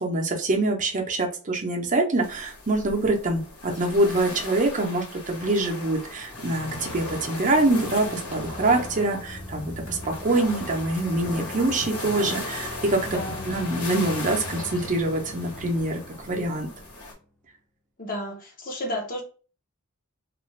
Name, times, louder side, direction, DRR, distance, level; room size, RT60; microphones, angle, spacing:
voice 1, 0.0-13.1 13.5-16.0 16.3-16.7, right 2 dB, 35° right, 0.6 m, -25 dB
sound 1, 2.2-17.1, left 2 dB, 90° left, 1.2 m, -37 dB
sound 2, 6.3-17.1, left 2 dB, 5° left, 0.6 m, -41 dB
voice 2, 13.1-13.5 18.0-19.2, left 1 dB, 40° left, 0.8 m, -32 dB
2.4 x 2.3 x 3.1 m
head